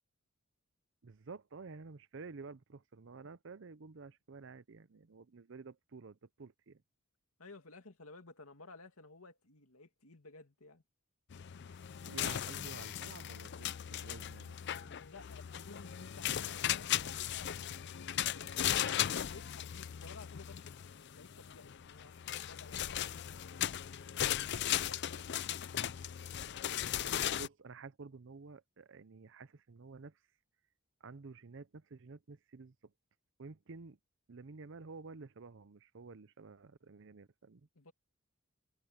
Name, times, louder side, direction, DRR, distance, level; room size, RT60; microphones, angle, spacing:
voice 1, 1.0-6.8 11.7-11.8 12.0-14.6 14.8-15.0 27.1-30.2 31.0-32.9 33.4-34.0 34.3-37.7, right 4 dB, 60° right, 0.6 m, -51 dB
voice 2, 7.4-10.8 15.0-18.7 19.3-23.6 24.2-25.7 37.8-37.9, left 3 dB, 80° left, 2.4 m, -56 dB
sound 1, 11.3-27.5, left 11 dB, 50° left, 0.4 m, -37 dB
head